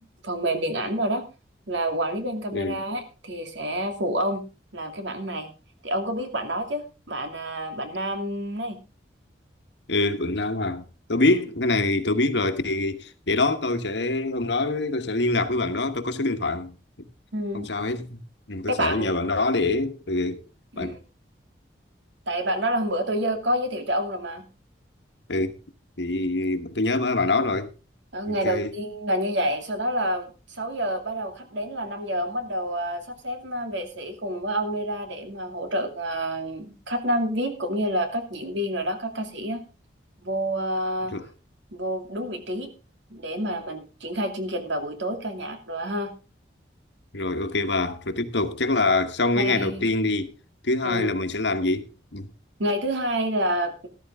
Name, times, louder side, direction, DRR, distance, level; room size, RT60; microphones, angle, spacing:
voice 1, 0.2-1.2 1.7-4.4 4.7-5.5 5.8-8.8 17.3-17.7 18.7-19.2 20.7-21.0 22.3-24.4 28.1-39.6 40.2-41.1 41.7-42.7 43.1-46.1 47.8-47.9 49.3-49.8 50.8-51.1 52.6-53.9, right 1 dB, 75° right, 2.5 m, -28 dB
voice 2, 2.5-2.8 9.9-17.1 17.5-18.2 18.5-20.4 20.8-21.0 25.3-25.6 26.0-27.7 28.3-28.7 41.1-41.3 47.1-50.3 50.6-52.3, left 2 dB, 70° left, 1.4 m, -25 dB
13.5 x 13.0 x 3.6 m
head